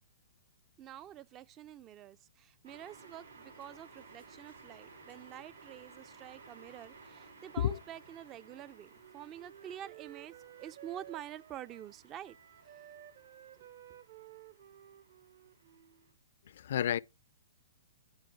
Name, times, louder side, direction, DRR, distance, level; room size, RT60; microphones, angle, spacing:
voice 1, 0.8-12.4 12.6-12.9, right 11 dB, 25° right, 0.4 m, -48 dB
sound 1, 2.6-16.1, right 4 dB, 80° right, 5.1 m, -57 dB
Wind instrument woodwind instrument, 8.4-12.0 12.2-16.1, right 11 dB, 55° right, 1.0 m, -55 dB
voice 2, 16.5-17.0, left 10 dB, 65° left, 0.4 m, -31 dB
9.7 x 4.3 x 3.3 m
hypercardioid pair, 135°, 0 cm